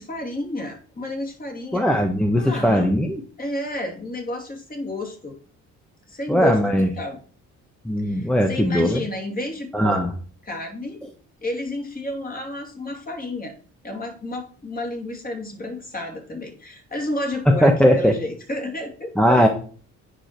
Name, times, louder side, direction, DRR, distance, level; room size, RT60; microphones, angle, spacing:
voice 1, 0.0-1.9 2.3-3.1 3.4-5.4 6.1-7.2 8.0-10.0 10.5-11.0 11.4-13.5 13.8-19.5, left 1 dB, 30° left, 2 dB, 2.6 m, -31 dB
voice 2, 1.7-3.2 6.3-6.9 7.8-9.0 9.7-10.1 17.5-18.2 19.2-19.5, equal, 5° left, 3 dB, 1.0 m, -19 dB
9.1 x 5.0 x 4.4 m, 0.42 s
cardioid pair, 90°, 30 cm